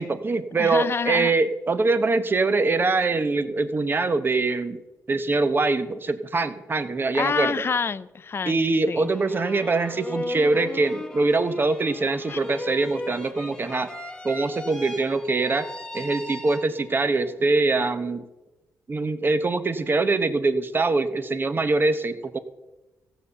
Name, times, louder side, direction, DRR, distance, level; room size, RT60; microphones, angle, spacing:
voice 1, 0.0-4.8 5.1-7.5 8.4-13.9 14.2-15.7 15.9-18.3 18.9-22.4, right 3 dB, 30° right, 10 dB, 0.9 m, -23 dB
voice 2, 0.6-1.3 7.1-8.6 8.9-9.1 12.3-12.4, left 5 dB, 35° left, 17 dB, 0.4 m, -27 dB
sound 1, 8.9-17.1, left 1 dB, 10° left, 1.2 m, -37 dB
15.0 x 7.0 x 6.7 m, 1.1 s
cardioid pair, 95°, 7 cm